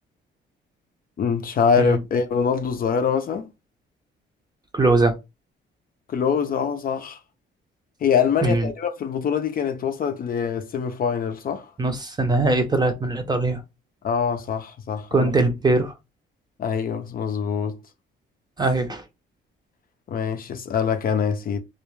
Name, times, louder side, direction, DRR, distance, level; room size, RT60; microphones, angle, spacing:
voice 1, 1.2-3.5 6.1-7.2 8.0-11.7 14.0-15.3 16.6-17.8 20.1-21.6, left 6 dB, 45° left, 0.5 m, -24 dB
voice 2, 4.7-5.1 8.4-8.7 11.8-13.6 15.1-15.9 18.6-19.0, right 2 dB, 20° right, 0.6 m, -21 dB
2.3 x 2.2 x 3.0 m
cardioid pair, 90°, 20 cm